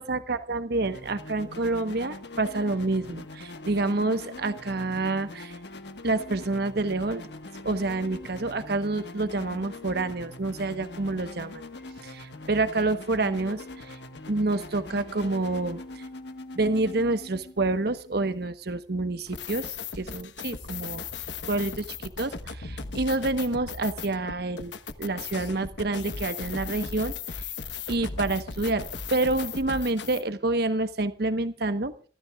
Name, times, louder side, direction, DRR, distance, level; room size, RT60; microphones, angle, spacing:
voice 1, 0.0-5.5 6.0-7.3 7.6-11.6 12.0-14.0 14.3-16.0 16.5-21.0 21.5-24.7 25.0-27.5 27.9-31.9, right 2 dB, 65° right, 10 dB, 1.2 m, -28 dB
sound 1, 0.7-18.5, left 2 dB, 70° left, 1.5 m, -43 dB
sound 2, 19.3-30.2, left 5 dB, 85° left, 1.2 m, -37 dB
29.5 x 14.0 x 2.4 m, 0.37 s
head